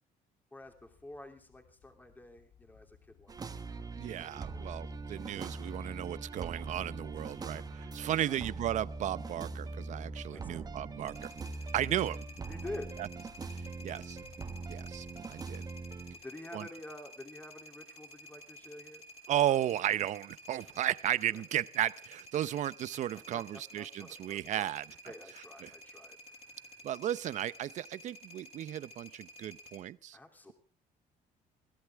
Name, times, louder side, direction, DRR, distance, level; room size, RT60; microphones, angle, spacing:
voice 1, 0.5-4.7 8.3-8.4 10.3-10.7 11.9-12.0 12.5-13.0 16.1-19.6 20.6-20.8 21.3-21.4 22.3-22.5 22.9-26.8 30.1-30.5, left 2 dB, 10° left, 4 dB, 2.9 m, -49 dB
sound 1, 0.6-15.5, left 8 dB, 70° left, 2.8 m, -61 dB
sound 2, 3.3-16.2, right 3 dB, 25° right, 1.3 m, -42 dB
voice 2, 3.9-11.3 11.7-12.2 13.5-14.2 14.7-15.7 16.5-16.7 19.3-24.8 25.6-25.7 26.8-30.2, right 12 dB, 55° right, 18 dB, 0.7 m, -34 dB
sound 3, 11.1-29.8, equal, 40° left, 5.8 m, -53 dB
23.0 x 15.5 x 3.5 m, 0.41 s
cardioid pair, 135°, 15 cm